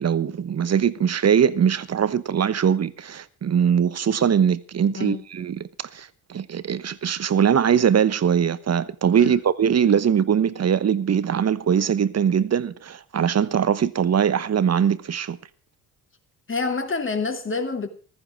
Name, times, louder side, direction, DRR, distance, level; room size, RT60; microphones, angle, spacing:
voice 1, 0.0-15.4, right 8 dB, 35° right, 1.1 m, -21 dB
voice 2, 4.9-5.2 9.2-9.4 16.5-17.9, left 4 dB, 30° left, 2.8 m, -27 dB
15.0 x 14.0 x 4.9 m
hypercardioid pair, 45°, 43 cm